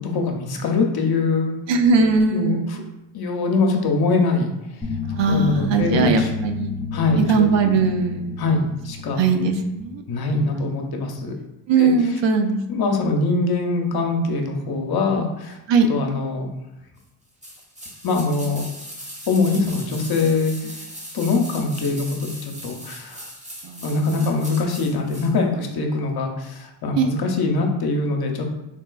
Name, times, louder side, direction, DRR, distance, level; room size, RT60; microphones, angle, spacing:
voice 1, 0.0-1.5 2.3-2.8 3.1-4.5 5.3-6.3 6.9-7.7 8.4-9.2 10.1-11.4 11.8-12.2 12.7-15.6 15.9-16.5 18.0-18.6 19.3-20.7 21.1-23.3 23.8-28.5, left 3 dB, 50° left, 2 dB, 0.6 m, -23 dB
voice 2, 1.7-2.8 5.1-6.7 7.1-8.4 9.2-10.0 10.4-10.6 11.7-12.9 15.7-15.9 23.6-23.9 26.9-27.1, right 4 dB, 65° right, 6 dB, 0.5 m, -20 dB
sound 1, 4.8-9.8, left 5 dB, 5° left, 0.4 m, -31 dB
sound 2, 17.4-25.3 25.6-25.7, equal, 15° right, 0.7 m, -38 dB
3.9 x 2.3 x 2.3 m, 0.96 s
cardioid pair, 75°, 48 cm